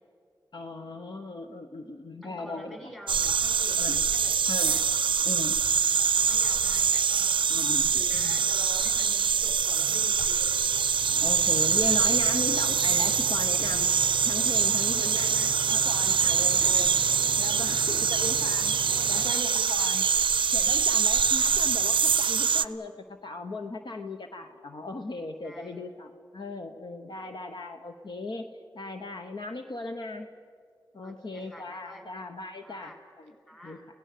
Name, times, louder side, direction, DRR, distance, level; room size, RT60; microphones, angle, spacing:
voice 1, 0.5-2.9 3.8-4.0 4.5-4.8 5.2-5.6 7.5-8.4 11.1-13.9 14.2-15.3 15.7-17.0 17.4-18.7 19.1-20.0 20.5-22.9 23.2-28.5 28.7-30.3 30.9-33.2 33.6-33.8, left 2 dB, 65° left, 6 dB, 1.0 m, -37 dB
voice 2, 2.2-4.8 6.1-7.4 7.9-10.6 14.9-15.6 16.4-16.9 18.9-20.1 25.4-25.8 31.0-32.1 32.6-33.0 33.5-33.9, equal, 10° left, 3 dB, 5.3 m, -46 dB
sound 1, 3.1-22.7, right 7 dB, 90° right, 0.5 m, -24 dB
sound 2, 10.2-19.3, right 2 dB, 20° right, 0.8 m, -41 dB
29.5 x 17.5 x 6.7 m, 2.3 s
cardioid pair, 55°, 8 cm